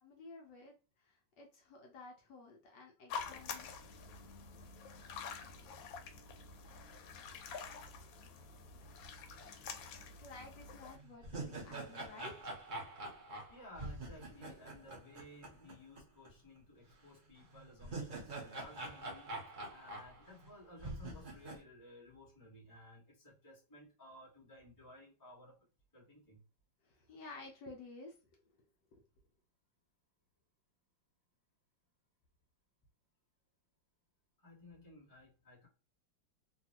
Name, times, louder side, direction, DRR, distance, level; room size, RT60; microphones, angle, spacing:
voice 1, 0.0-3.7 10.2-12.6 26.8-28.2 28.9-29.0, left 3 dB, 70° left, 1 dB, 1.2 m, -53 dB
sound 1, 3.1-11.0, left 5 dB, 90° left, 1.4 m, -47 dB
sound 2, 10.4-10.5 10.9-16.0 16.3-16.4 17.5-20.5 20.8-21.6, right 2 dB, 70° right, 0.4 m, -45 dB
voice 2, 13.5-25.6 25.9-26.4 34.4-35.7, left 1 dB, 10° left, -5 dB, 1.2 m, -57 dB
3.3 x 2.3 x 2.7 m, 0.34 s
omnidirectional pair, 2.0 m